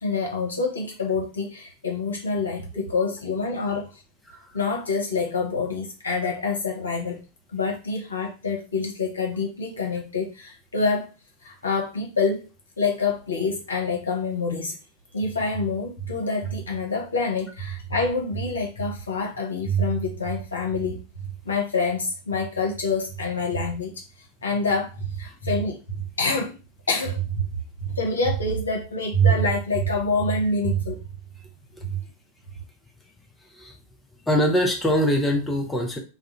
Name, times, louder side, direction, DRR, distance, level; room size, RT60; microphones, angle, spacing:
voice 1, 0.0-4.0 4.5-7.2 7.5-11.1 11.4-12.5 12.8-14.7 15.1-23.9 24.4-26.5 26.9-27.5 27.8-31.0 31.8-32.0, left 2 dB, 70° left, 0 dB, 0.8 m, -26 dB
voice 2, 34.3-36.0, equal, 5° left, 1 dB, 0.5 m, -23 dB
2.3 x 2.0 x 2.9 m, 0.32 s
figure-of-eight pair, 90°, 0 cm